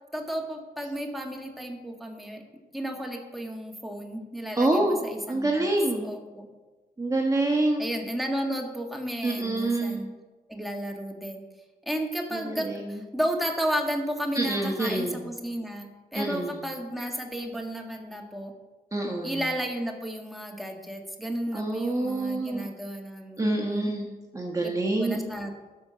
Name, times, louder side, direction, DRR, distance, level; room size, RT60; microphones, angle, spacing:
voice 1, 0.1-2.4 2.7-5.7 6.0-6.5 7.8-10.1 10.5-11.4 11.8-18.5 19.2-24.1 24.6-24.7 25.0-25.6, equal, ahead, 1 dB, 1.7 m, -33 dB
voice 2, 4.6-5.0 5.3-6.1 7.0-7.8 9.2-10.0 12.3-13.0 14.3-15.3 16.1-16.6 18.9-19.4 21.5-22.7 23.4-24.1 24.3-25.2, right 2 dB, 20° right, 0 dB, 1.3 m, -27 dB
12.5 x 5.1 x 6.9 m, 1.2 s
cardioid pair, 90°, 17 cm